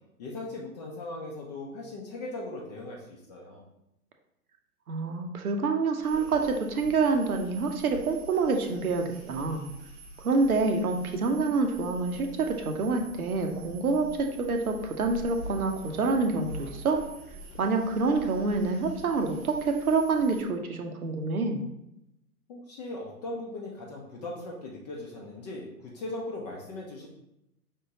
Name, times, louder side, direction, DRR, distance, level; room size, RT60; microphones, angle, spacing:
voice 1, 0.2-3.6 22.5-27.1, left 2 dB, 30° left, -2 dB, 0.6 m, -39 dB
voice 2, 4.9-9.7 10.2-17.0 17.6-21.6, right 4 dB, 70° right, 4 dB, 0.9 m, -27 dB
sound 1, 6.0-20.4, right 1 dB, 10° right, 0.4 m, -46 dB
5.1 x 3.6 x 2.8 m, 0.85 s
figure-of-eight pair, 110°, 46 cm